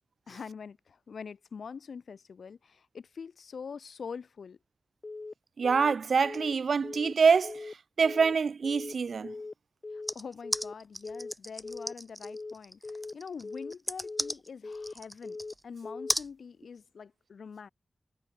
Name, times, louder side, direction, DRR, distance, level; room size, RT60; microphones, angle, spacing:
voice 1, 0.3-4.6 9.9-12.8 13.1-15.4 15.6-17.7, left 6 dB, 85° left, 4.3 m, -44 dB
Telephone, 5.0-5.3 5.6-5.9 6.2-6.5 6.8-7.1 7.4-7.7 8.0-8.3 8.6-8.9 9.2-9.5 9.8-10.1 10.4-10.7 11.0-11.3 11.6-11.9 12.2-12.5 12.8-13.1 13.4-13.7 14.0-14.3 14.6-14.9 15.2-15.5 15.8-16.1, left 3 dB, 45° left, 0.5 m, -40 dB
voice 2, 5.6-9.3, right 5 dB, 80° right, 0.5 m, -26 dB
sound 1, 10.1-15.6 16.1-16.3, equal, 5° right, 2.3 m, -35 dB
wide cardioid pair, 70°, 0 cm